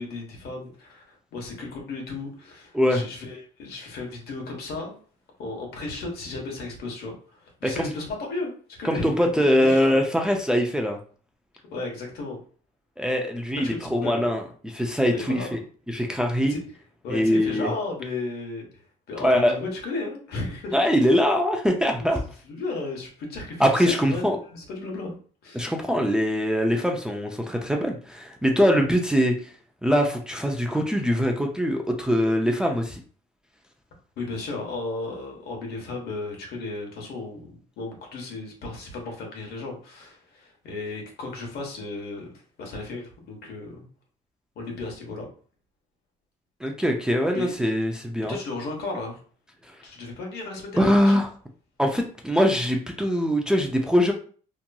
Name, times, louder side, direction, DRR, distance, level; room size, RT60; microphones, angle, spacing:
voice 1, 0.0-5.0 5.4-8.5 8.8-9.9 11.7-12.4 13.6-14.3 15.0-15.6 16.5-16.6 17.0-21.1 22.4-24.2 24.5-25.2 25.4-25.7 28.8-28.9 34.2-42.3 42.6-43.9 44.5-45.3 47.3-47.6 48.3-49.2 49.8-51.2, left 3 dB, 70° left, 1 dB, 1.1 m, -34 dB
voice 2, 8.8-11.0 13.0-15.6 15.9-16.5 17.1-17.7 19.2-19.6 20.7-22.2 23.6-24.4 25.5-29.5 29.8-33.0 46.6-48.4 49.6-49.8 50.7-51.3 51.8-54.1, equal, 5° right, 2 dB, 0.4 m, -22 dB
2.9 x 2.5 x 2.2 m, 0.42 s
cardioid pair, 110°, 17 cm